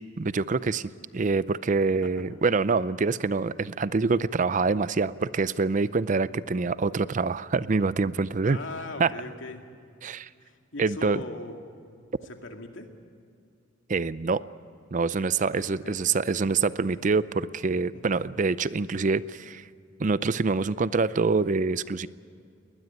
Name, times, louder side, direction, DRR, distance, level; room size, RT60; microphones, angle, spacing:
voice 1, 0.2-8.6 9.0-9.1 10.0-10.3 10.8-11.2 13.9-14.4 14.9-19.6 20.0-22.1, right 4 dB, 40° right, 17 dB, 0.5 m, -25 dB
voice 2, 8.4-9.6 10.4-11.6 12.2-12.9 15.5-16.2 16.9-17.0 17.9-18.3, left 2 dB, 75° left, 4 dB, 2.3 m, -40 dB
21.0 x 20.0 x 9.4 m, 2.3 s
head